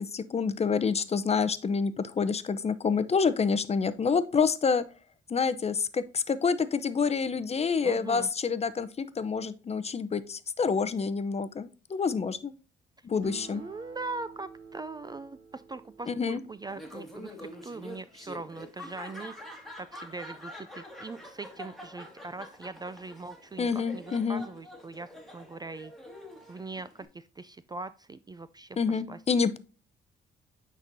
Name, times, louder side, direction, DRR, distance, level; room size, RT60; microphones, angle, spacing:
voice 1, 0.0-4.8 5.3-12.5 13.0-13.6 16.1-16.4 23.6-24.5 28.8-29.6, left 5 dB, 30° left, 13 dB, 0.6 m, -28 dB
voice 2, 7.8-8.3 13.5-19.3 19.8-25.9 26.5-29.2, right 3 dB, 20° right, 15 dB, 0.3 m, -41 dB
Acoustic guitar, 13.2-18.1, right 6 dB, 85° right, 1.4 m, -51 dB
Laughter, 16.7-27.1, left 1 dB, ahead, 2.0 m, -46 dB
9.5 x 4.2 x 2.6 m, 0.35 s
cardioid pair, 90°, 20 cm